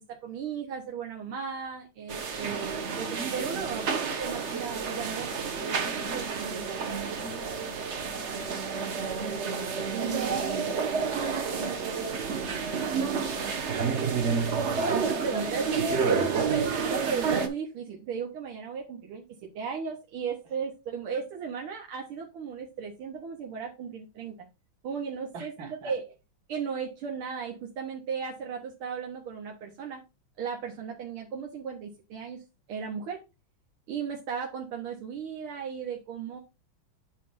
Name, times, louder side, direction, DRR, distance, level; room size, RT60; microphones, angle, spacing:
voice 1, 0.0-6.9 9.9-10.3 14.8-19.2 19.5-24.4 24.8-26.0 26.5-30.0 30.4-32.4 32.7-33.2 33.9-36.4, right 6 dB, 85° right, 0 dB, 2.1 m, -35 dB
sound 1, 2.1-17.5, right 5 dB, 45° right, 0.9 m, -30 dB
voice 2, 10.0-10.7 11.0-13.7 15.2-15.6 25.3-25.9, right 3 dB, 65° right, 1 dB, 2.6 m, -43 dB
8.3 x 3.2 x 5.4 m, 0.26 s
omnidirectional pair, 2.3 m